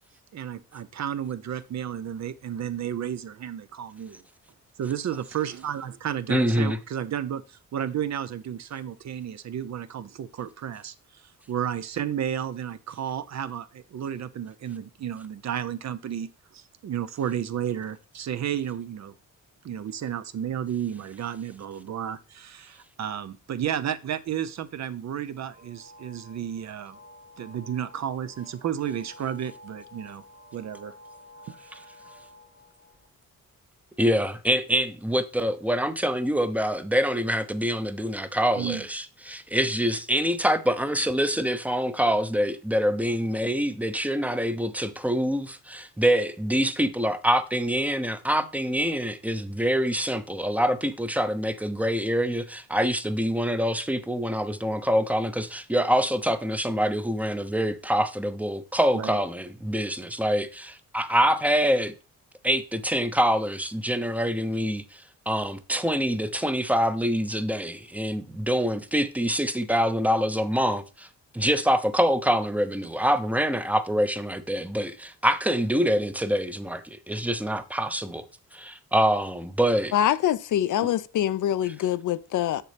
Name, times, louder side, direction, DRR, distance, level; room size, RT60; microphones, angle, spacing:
voice 1, 0.3-4.2 4.8-19.1 19.6-27.0 27.4-30.2 30.5-30.9 31.5-31.9 38.5-38.9 58.9-59.2, right 9 dB, 55° right, 0.6 m, -32 dB
voice 2, 6.3-6.8 34.0-61.9 62.4-71.1 71.3-78.2 78.5-79.9, equal, 5° right, 0.6 m, -25 dB
sound 1, 25.5-33.1, left 1 dB, 80° right, 2.4 m, -51 dB
voice 3, 79.9-82.6, left 11 dB, 70° left, 0.5 m, -24 dB
7.2 x 6.7 x 3.3 m
cardioid pair, 100°, 32 cm